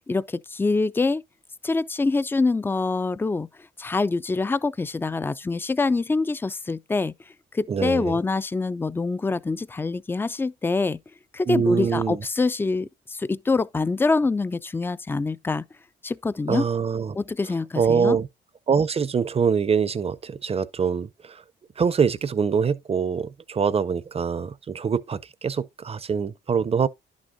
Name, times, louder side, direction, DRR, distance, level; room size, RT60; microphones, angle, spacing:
voice 1, 0.1-1.2 1.6-3.5 3.8-7.1 7.5-11.0 11.3-15.6 16.0-16.6 17.1-18.2, left 3 dB, 10° left, 0.3 m, -25 dB
voice 2, 7.7-8.2 11.5-12.2 16.5-17.2 17.8-18.3 18.7-21.4 21.8-26.9, right 6 dB, 30° right, 0.6 m, -24 dB
11.0 x 6.2 x 2.6 m
cardioid pair, 90°, 20 cm